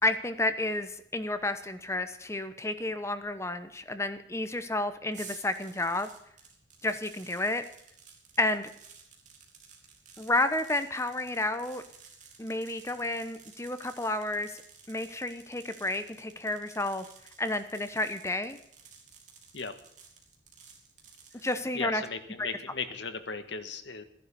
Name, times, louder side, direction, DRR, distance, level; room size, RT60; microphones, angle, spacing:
voice 1, 0.0-6.1 6.8-7.6 8.4-8.7 10.2-11.8 12.4-14.5 14.9-17.0 17.4-18.6 21.4-22.0 22.4-22.5, left 2 dB, 15° left, 10 dB, 1.0 m, -31 dB
sound 1, 5.1-21.6, right 6 dB, 40° right, 3.1 m, -54 dB
voice 2, 21.7-24.0, left 4 dB, 75° left, 8 dB, 1.6 m, -36 dB
15.5 x 11.0 x 7.0 m, 0.71 s
head